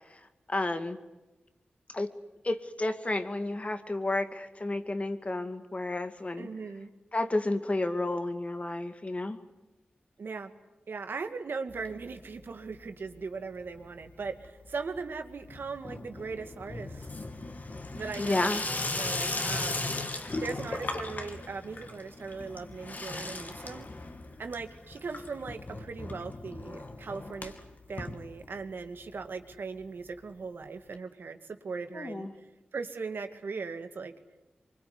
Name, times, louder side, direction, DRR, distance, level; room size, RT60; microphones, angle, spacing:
voice 1, 0.5-1.0 1.9-2.1 2.4-6.5 7.1-9.4 18.2-18.6 31.9-32.3, left 2 dB, 35° left, 9 dB, 2.2 m, -31 dB
voice 2, 6.4-6.9 10.2-10.5 10.9-17.1 17.9-18.6 18.9-20.0 20.4-23.9 24.4-27.5 27.9-32.3 32.7-34.1, right 4 dB, 80° right, 7 dB, 2.1 m, -39 dB
Water tap faucet / Sink (filling or washing), 11.7-12.5 12.7-13.3 13.6-28.9 29.2-29.3 29.5-29.6 29.8-29.9 30.9-31.0, left 2 dB, 50° left, 2.9 m, -38 dB
24.5 x 23.5 x 9.7 m, 1.1 s
cardioid pair, 50°, 4 cm